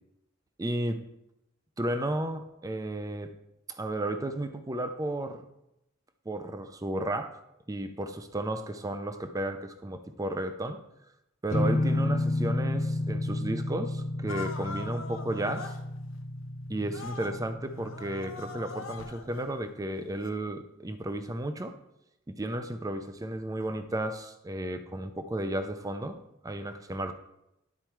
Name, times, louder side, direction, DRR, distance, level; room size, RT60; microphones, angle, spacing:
voice 1, 0.6-1.0 1.8-3.3 3.7-5.5 6.3-7.4 7.7-10.8 11.4-15.7 16.7-21.7 22.3-27.1, right 1 dB, 15° right, 9 dB, 0.5 m, -33 dB
sound 1, 11.5-19.1, left 2 dB, 35° left, 0.7 m, -32 dB
sound 2, 14.3-15.8 16.9-17.4 17.7-19.4 20.2-20.3, left 4 dB, 70° left, 0.7 m, -42 dB
10.5 x 4.4 x 4.5 m, 0.85 s
head